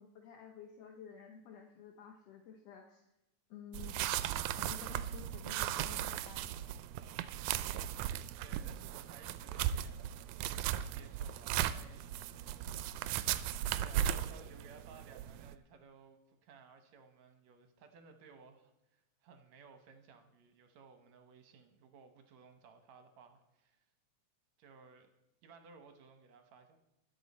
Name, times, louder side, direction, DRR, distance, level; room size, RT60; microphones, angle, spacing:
voice 1, 0.0-3.1 3.5-4.0 4.5-6.5, left 7 dB, 70° left, 3 dB, 1.8 m, -52 dB
sound 1, 3.7-15.6, right 11 dB, 90° right, 2.0 m, -37 dB
voice 2, 8.4-23.9 24.6-25.1 25.4-26.8, right 5 dB, 70° right, 6 dB, 2.2 m, -59 dB
20.5 x 7.2 x 4.2 m, 0.94 s
omnidirectional pair, 3.4 m